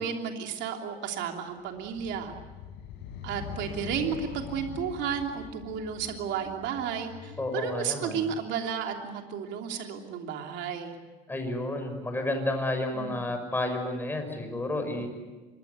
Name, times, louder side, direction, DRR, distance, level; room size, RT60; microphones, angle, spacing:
voice 1, 0.0-2.3 3.2-11.0 12.9-13.2 14.8-15.1, right 7 dB, 75° right, 3 dB, 3.2 m, -33 dB
sound 1, 1.7-8.2, left 8 dB, 80° left, 4.8 m, -43 dB
voice 2, 7.4-8.2 11.3-15.1, left 1 dB, 10° left, 5 dB, 5.9 m, -31 dB
26.5 x 23.0 x 8.3 m, 1.3 s
cardioid pair, 135°, 19 cm